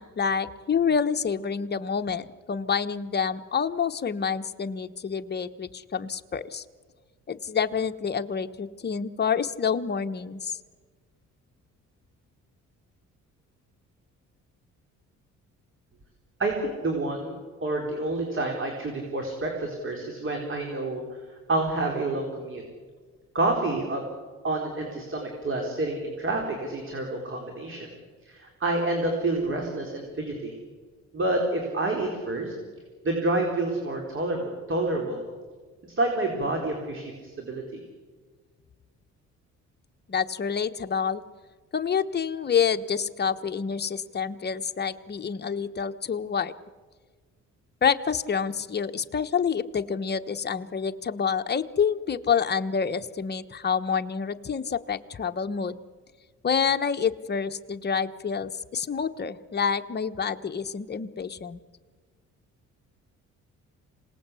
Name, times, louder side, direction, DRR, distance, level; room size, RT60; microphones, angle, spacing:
voice 1, 0.0-6.6 7.3-10.6 40.1-41.2 41.7-46.5 47.8-55.8 56.4-61.6, left 6 dB, 35° left, 7 dB, 1.1 m, -28 dB
voice 2, 16.4-21.0 21.5-22.6 23.3-24.0 24.4-27.9 28.2-30.5 31.1-32.5 33.0-35.2 35.8-37.8, right 2 dB, 40° right, 2 dB, 4.4 m, -28 dB
26.5 x 18.5 x 8.4 m, 1.5 s
cardioid pair, 90°, 30 cm